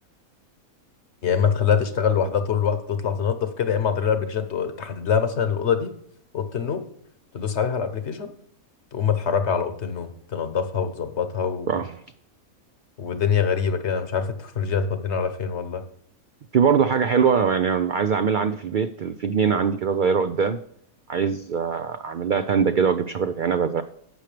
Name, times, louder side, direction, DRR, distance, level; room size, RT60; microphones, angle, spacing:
voice 1, 1.2-5.9 6.3-6.8 7.3-8.3 8.9-11.7 13.0-15.8, left 7 dB, 55° left, 9 dB, 1.2 m, -24 dB
voice 2, 16.5-20.6 21.1-23.8, right 6 dB, 75° right, 9 dB, 0.4 m, -22 dB
11.5 x 7.8 x 3.3 m, 0.66 s
omnidirectional pair, 1.5 m